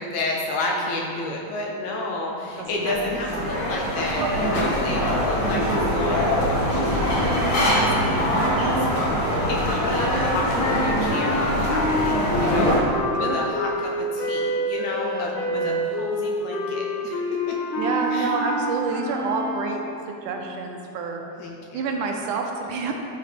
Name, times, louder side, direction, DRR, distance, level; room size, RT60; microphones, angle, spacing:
voice 1, 0.0-12.8 13.2-17.2 18.1-18.3 21.4-21.9, left 2 dB, 70° left, -1 dB, 1.9 m, -31 dB
voice 2, 0.8-1.3 2.6-3.0 3.3-3.6 7.8-8.4 12.5-12.9 13.1-13.4 15.1-15.8 17.8-21.2 21.7-22.9, right 4 dB, 75° right, 2 dB, 2.2 m, -29 dB
sound 1, 2.5-12.8, equal, 40° left, 1.4 m, -23 dB
sound 2, 10.5-20.1, left 1 dB, 85° left, 2.6 m, -28 dB
13.5 x 5.9 x 3.4 m, 2.6 s
omnidirectional pair, 3.8 m